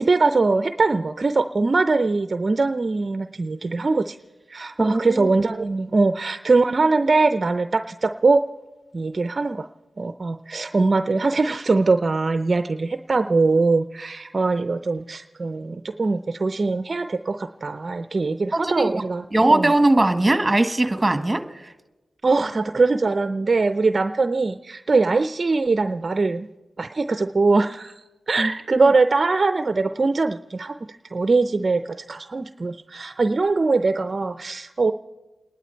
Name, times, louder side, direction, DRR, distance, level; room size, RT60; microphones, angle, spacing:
voice 1, 0.0-4.2 4.5-8.4 8.9-9.7 10.0-19.7 22.2-26.5 26.8-28.0 28.3-34.9, right 3 dB, 45° right, 9 dB, 0.6 m, -22 dB
voice 2, 4.8-5.3 18.5-18.9 19.3-21.4 28.4-28.9, right 2 dB, 20° right, 8 dB, 1.6 m, -20 dB
29.5 x 11.0 x 4.5 m, 1.1 s
cardioid pair, 50°, 0 cm